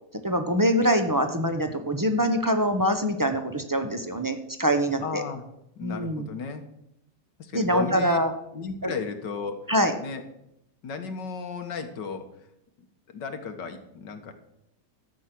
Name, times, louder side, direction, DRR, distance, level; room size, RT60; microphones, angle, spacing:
voice 1, 0.2-5.2 5.8-6.3 7.5-8.3 8.8-8.9 9.7-9.9, equal, 15° right, 7 dB, 0.6 m, -24 dB
voice 2, 5.0-5.4 5.8-6.6 7.4-8.2 8.5-9.6 10.0-10.2 10.8-12.5 13.1-14.3, left 5 dB, 85° left, 7 dB, 2.0 m, -34 dB
13.0 x 8.1 x 6.0 m, 0.81 s
omnidirectional pair, 1.8 m